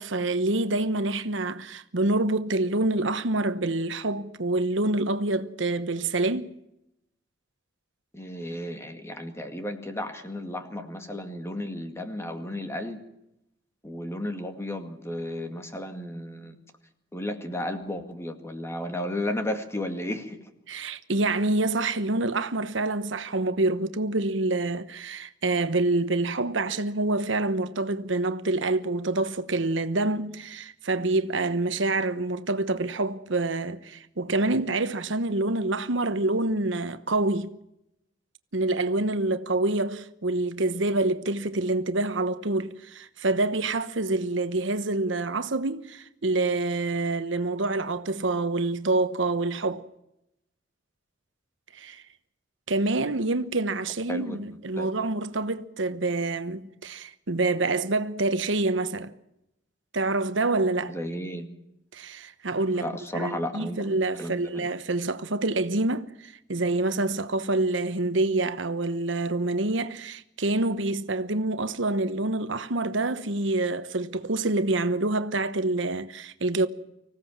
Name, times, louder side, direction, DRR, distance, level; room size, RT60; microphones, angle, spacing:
voice 1, 0.0-6.5 20.7-37.5 38.5-49.8 51.7-52.0 52.7-59.1 59.9-61.0 61.9-76.7, right 2 dB, 70° right, 1.1 m, -27 dB
voice 2, 8.1-13.0 13.8-16.6 17.1-20.4 54.1-54.4 54.8-54.9 60.9-61.5 62.7-63.8 64.2-64.7, left 1 dB, 15° left, 2.2 m, -33 dB
25.5 x 16.0 x 7.3 m
head